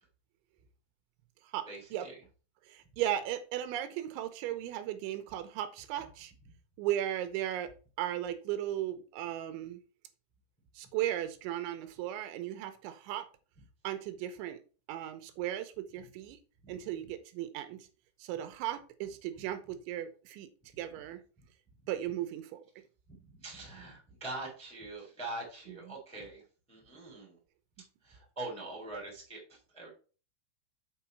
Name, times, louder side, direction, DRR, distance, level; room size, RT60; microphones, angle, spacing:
voice 1, 1.7-2.1 23.3-26.4 26.7-27.4 28.0-29.9, right 2 dB, ahead, 0 dB, 1.9 m, -43 dB
voice 2, 2.7-6.3 6.8-7.7 8.0-9.8 10.8-13.3 13.8-14.6 14.9-16.4 16.7-17.9 18.2-20.5 20.8-21.2 21.9-22.6 25.7-26.0, right 12 dB, 85° right, 10 dB, 3.0 m, -36 dB
7.2 x 5.4 x 4.5 m, 0.36 s
omnidirectional pair, 5.4 m